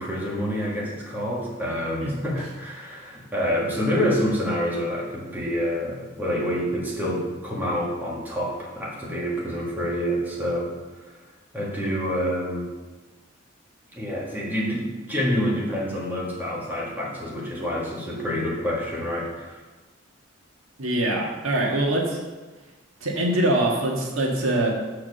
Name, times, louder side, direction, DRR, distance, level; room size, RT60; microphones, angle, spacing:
voice 1, 0.0-11.1 11.5-12.7 13.9-19.6, equal, 10° right, -5 dB, 1.7 m, -27 dB
voice 2, 20.8-22.2 23.0-24.7, right 1 dB, 85° right, -1 dB, 1.7 m, -23 dB
7.2 x 4.8 x 6.9 m, 1.2 s
head